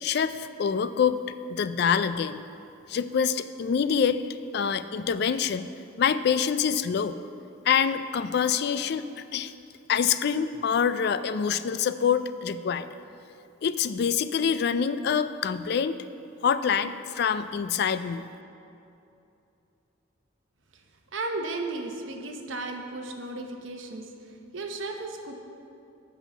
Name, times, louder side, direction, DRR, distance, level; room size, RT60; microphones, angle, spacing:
voice 1, 0.0-1.2 1.5-2.4 2.9-4.2 4.5-5.7 6.0-7.2 7.7-9.5 9.9-12.9 13.6-16.0 16.4-18.2, left 7 dB, 55° left, 13 dB, 0.3 m, -26 dB
voice 2, 21.1-25.3, right 2 dB, 75° right, 4 dB, 0.9 m, -35 dB
8.0 x 5.6 x 7.1 m, 2.7 s
head